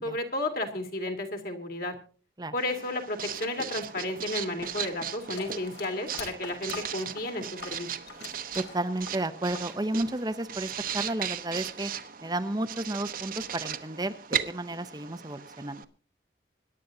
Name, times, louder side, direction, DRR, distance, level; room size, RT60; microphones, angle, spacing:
voice 1, 0.0-1.9 2.5-7.9, left 1 dB, 50° left, 4 dB, 2.9 m, -33 dB
Writing, 2.6-15.8, right 8 dB, 50° right, 1.0 m, -37 dB
sound 1, 4.6-9.8 10.0-10.9, left 4 dB, 75° left, 4.8 m, -44 dB
voice 2, 8.5-11.9 12.2-15.8, right 1 dB, 20° right, 9 dB, 0.7 m, -32 dB
25.5 x 11.0 x 2.7 m, 0.38 s
head